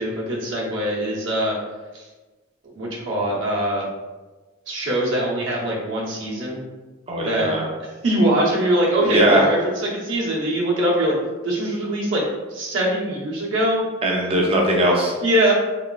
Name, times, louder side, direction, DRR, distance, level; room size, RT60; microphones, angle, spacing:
voice 1, 0.0-1.6 1.9-2.1 2.7-3.9 4.7-6.6 7.2-11.2 11.4-12.2 12.5-13.8 15.2-15.6, right 1 dB, 65° right, -4 dB, 0.8 m, -22 dB
voice 2, 7.1-7.6 9.0-9.5 14.0-15.1, right 1 dB, 30° right, -1 dB, 0.5 m, -19 dB
3.1 x 3.1 x 2.3 m, 1.3 s
head